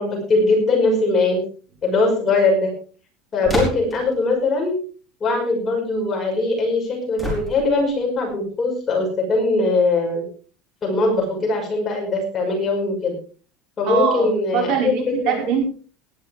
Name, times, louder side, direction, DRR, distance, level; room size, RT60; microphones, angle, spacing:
voice 1, 0.0-1.4 1.8-2.7 3.3-4.8 5.2-10.2 10.8-13.1 13.8-15.3, left 3 dB, 20° left, 0 dB, 5.8 m, -21 dB
sound 1, 3.4-4.1 7.2-7.9, equal, 5° right, 4.6 m, -27 dB
voice 2, 13.9-15.6, right 7 dB, 50° right, 1 dB, 5.3 m, -22 dB
18.5 x 11.5 x 3.6 m, 0.40 s
cardioid pair, 180°, 0 cm